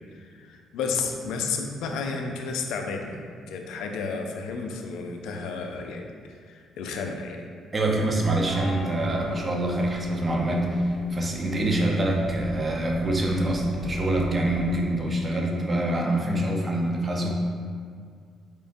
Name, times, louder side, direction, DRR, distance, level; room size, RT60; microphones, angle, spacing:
voice 1, 0.3-3.2 3.5-7.4, left 4 dB, 90° left, 3 dB, 0.4 m, -32 dB
voice 2, 7.7-17.3, right 1 dB, 30° right, -1 dB, 0.7 m, -25 dB
sound 1, 8.0-14.7, left 2 dB, 65° left, 1.0 m, -40 dB
4.2 x 3.6 x 2.6 m, 2.2 s
cardioid pair, 90°, 0 cm